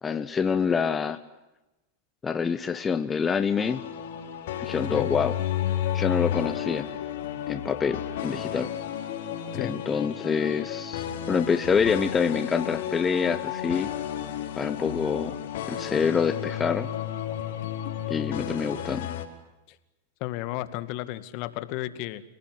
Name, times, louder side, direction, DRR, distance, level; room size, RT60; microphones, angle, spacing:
voice 1, 0.0-1.2 2.2-3.8 4.6-5.4 5.9-6.9 7.5-8.7 9.5-13.9 14.5-15.3 15.7-16.9 18.1-19.1, left 6 dB, 20° left, 10 dB, 1.3 m, -26 dB
sound 1, 3.6-19.3, left 10 dB, 70° left, 4.4 m, -32 dB
voice 2, 20.2-22.2, left 16 dB, 55° left, 13 dB, 2.1 m, -33 dB
29.5 x 19.0 x 9.6 m, 1.0 s
hypercardioid pair, 120°, 0 cm